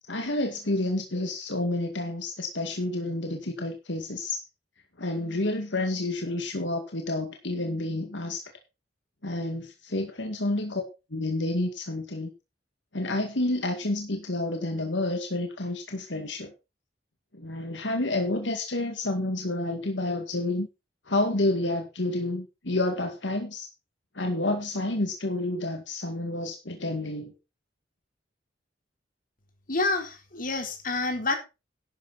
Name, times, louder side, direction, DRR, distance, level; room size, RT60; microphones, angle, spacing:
voice 1, 0.1-4.4 5.0-8.4 9.2-10.8 11.1-12.3 12.9-16.5 17.4-20.7 21.1-23.7 24.2-27.3, left 2 dB, 75° left, 2.1 m, -29 dB
voice 2, 29.7-31.4, left 3 dB, 50° left, 3.8 m, -28 dB
12.0 x 10.5 x 4.1 m
head